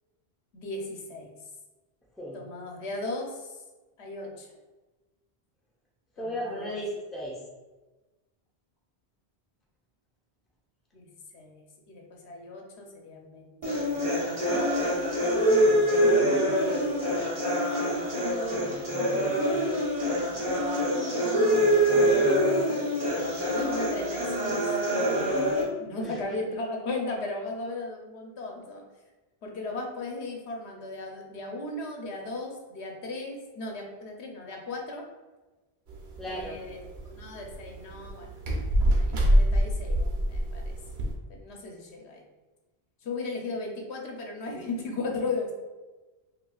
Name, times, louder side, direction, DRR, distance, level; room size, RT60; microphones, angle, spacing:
voice 1, 0.5-1.3 2.3-3.5 4.0-4.5 6.2-6.8 10.9-11.6 11.9-15.1 16.0-19.1 20.5-20.6 20.9-22.6 23.4-24.6 24.9-25.5 25.8-28.8 29.4-35.1 36.2-36.8 37.1-38.3 38.9-40.7 41.3-42.2 43.0-45.5, left 2 dB, 80° left, 0 dB, 1.0 m, -37 dB
voice 2, 6.2-7.4 26.0-26.2 36.2-36.6, equal, ahead, -4 dB, 0.6 m, -35 dB
sound 1, 13.6-25.6, equal, 35° right, 1.1 m, -25 dB
sound 2, 35.9-41.1, equal, 85° right, 1.0 m, -26 dB
5.3 x 2.7 x 2.3 m, 1.2 s
omnidirectional pair, 1.1 m